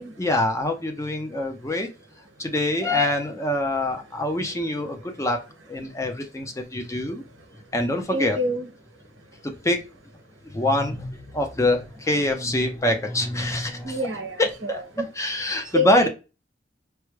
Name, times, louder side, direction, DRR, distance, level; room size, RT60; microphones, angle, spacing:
voice 1, 0.2-1.9 2.4-5.4 5.7-7.2 7.7-8.4 9.4-9.8 10.5-14.0 14.4-14.8 15.2-16.1, left 1 dB, 15° left, 4 dB, 0.5 m, -25 dB
voice 2, 8.1-8.7 13.8-15.1 15.7-16.1, equal, 75° right, 4 dB, 0.9 m, -28 dB
4.6 x 2.1 x 3.1 m, 0.30 s
head